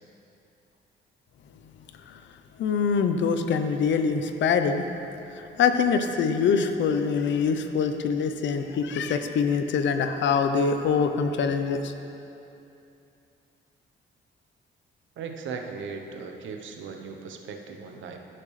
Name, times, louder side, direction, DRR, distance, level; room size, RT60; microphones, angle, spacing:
voice 1, 2.6-4.9 5.4-11.9, left 6 dB, 70° left, 8 dB, 0.7 m, -24 dB
voice 2, 15.2-18.2, right 5 dB, 75° right, 4 dB, 0.9 m, -38 dB
15.0 x 5.8 x 3.3 m, 2.8 s
cardioid pair, 90°, 20 cm